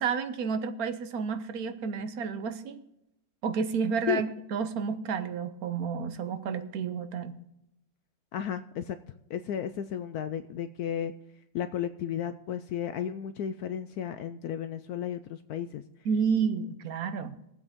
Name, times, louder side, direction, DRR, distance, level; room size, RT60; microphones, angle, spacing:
voice 1, 0.0-2.8 3.4-7.4 16.0-17.4, right 6 dB, 60° right, 10 dB, 1.2 m, -30 dB
voice 2, 8.3-9.0 9.3-11.1 11.5-15.8, left 9 dB, 75° left, 10 dB, 0.9 m, -33 dB
21.0 x 7.9 x 3.6 m, 0.83 s
omnidirectional pair, 2.1 m